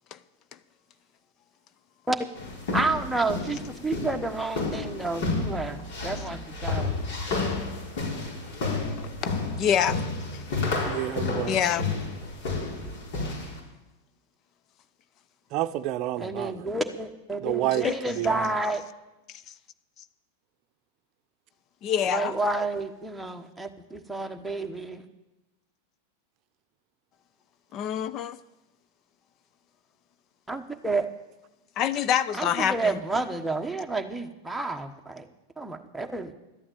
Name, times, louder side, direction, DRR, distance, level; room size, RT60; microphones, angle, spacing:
sound 1, 2.4-13.6, left 3 dB, 65° left, 5.1 m, -31 dB
voice 1, 2.7-6.9 16.2-18.8 22.1-25.0 30.5-31.1 32.4-35.3 35.6-36.3, right 2 dB, 5° right, 1.3 m, -30 dB
voice 2, 9.6-10.0 11.5-11.8 17.8-17.9 21.8-22.3 27.7-28.4 31.8-33.0, left 9 dB, 40° left, 0.6 m, -25 dB
voice 3, 10.8-11.6 15.5-16.7 17.4-17.9 18.2-18.4, right 14 dB, 45° right, 0.7 m, -29 dB
12.5 x 8.6 x 8.8 m
hypercardioid pair, 110°, 0 cm